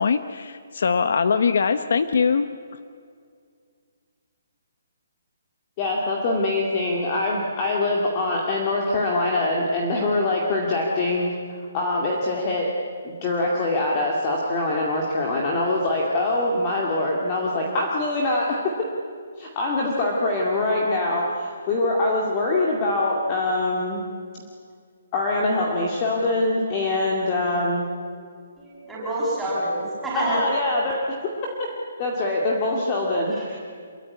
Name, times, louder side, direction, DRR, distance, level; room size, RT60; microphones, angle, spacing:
voice 1, 0.0-2.5, left 5 dB, 50° left, 11 dB, 0.9 m, -22 dB
voice 2, 5.8-11.3 11.7-12.7 13.0-18.6 19.4-24.0 25.1-27.8 30.1-31.2 32.0-33.6, left 2 dB, 20° left, -1 dB, 2.2 m, -24 dB
voice 3, 28.6-30.4 33.4-33.6, right 1 dB, 5° right, -9 dB, 6.7 m, -27 dB
26.5 x 22.5 x 9.6 m, 2.2 s
hypercardioid pair, 180°, 0 cm